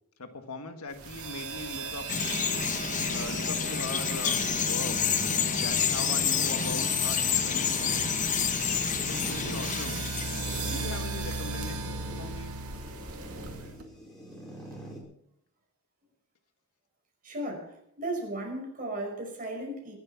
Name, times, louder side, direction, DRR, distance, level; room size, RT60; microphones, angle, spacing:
voice 1, 0.2-2.1 3.1-5.0 5.5-8.1 8.9-10.0 10.6-12.6, left 3 dB, 70° left, 1.6 m, -40 dB
sound 1, 1.0-13.8, right 4 dB, 75° right, 2.4 m, -37 dB
Bird vocalization bird call bird song, 2.1-11.0, left 7 dB, 35° left, 1.0 m, -29 dB
sound 2, 4.5-15.0, right 1 dB, 5° left, 4.7 m, -45 dB
voice 2, 17.2-19.9, right 1 dB, 40° right, 5.5 m, -35 dB
23.5 x 8.0 x 5.9 m
head